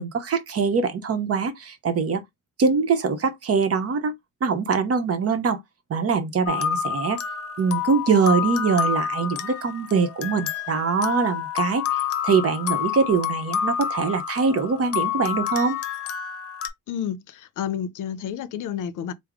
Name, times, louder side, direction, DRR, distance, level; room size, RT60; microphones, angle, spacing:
voice 1, 0.0-2.2 2.6-4.1 4.4-5.6 5.9-7.2 7.6-15.8, right 5 dB, 50° right, 0.8 m, -23 dB
sound 1, 6.5-16.7, left 9 dB, 50° left, 0.6 m, -28 dB
voice 2, 16.9-19.1, left 9 dB, 90° left, 0.6 m, -30 dB
3.5 x 2.0 x 3.5 m
cardioid pair, 115°, 30 cm